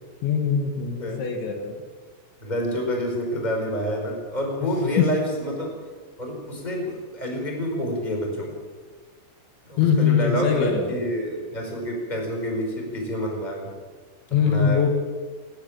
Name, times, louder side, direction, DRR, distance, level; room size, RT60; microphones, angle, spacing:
voice 1, 0.2-1.8 5.0-5.1 9.8-11.0 14.3-15.0, left 7 dB, 70° left, 3 dB, 3.9 m, -22 dB
voice 2, 2.4-5.8 6.2-8.6 9.6-13.7 14.3-14.8, equal, 10° left, 0 dB, 4.5 m, -28 dB
29.0 x 10.5 x 8.8 m, 1.5 s
omnidirectional pair, 5.7 m